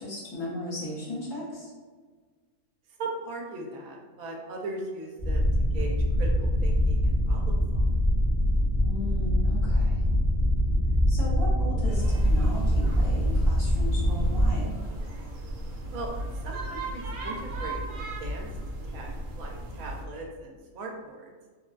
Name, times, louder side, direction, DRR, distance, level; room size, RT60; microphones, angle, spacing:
voice 1, 0.0-1.7 8.8-10.0 11.1-14.7, left 1 dB, 70° left, -7 dB, 1.5 m, -36 dB
voice 2, 2.9-5.5 5.7-7.9 15.9-18.5 18.8-21.3, right 2 dB, 85° right, 0 dB, 1.1 m, -39 dB
sound 1, 5.2-14.5, equal, 40° left, 1.3 m, -24 dB
sound 2, 11.9-20.0, right 1 dB, 65° right, 0.5 m, -34 dB
3.7 x 2.2 x 2.4 m, 1.5 s
omnidirectional pair, 1.5 m